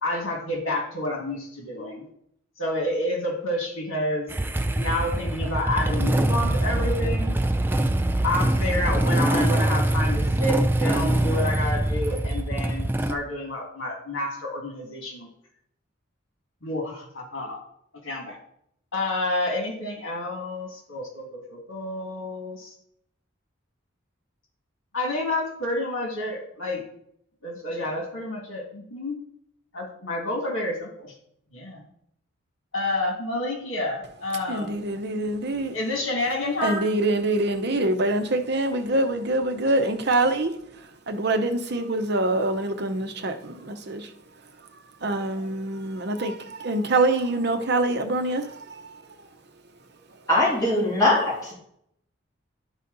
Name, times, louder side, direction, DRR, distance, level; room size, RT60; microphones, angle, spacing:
voice 1, 0.0-2.0 2.6-4.3 4.8-7.3 8.2-15.3 16.6-17.6 18.0-18.4 18.9-22.7 24.9-26.8 27.4-29.2 29.7-31.1 31.5-31.8 32.7-34.8 35.7-36.8, left 1 dB, 90° left, 0 dB, 2.0 m, -29 dB
Motorcycle / Engine starting, 4.3-13.1, right 1 dB, 10° right, 0.3 m, -23 dB
voice 2, 34.5-35.7 36.6-40.5 41.1-44.1 45.0-49.0, right 2 dB, 55° right, 6 dB, 0.8 m, -25 dB
voice 3, 50.3-51.5, left 1 dB, 20° left, -7 dB, 2.9 m, -21 dB
11.0 x 4.1 x 3.9 m, 0.70 s
head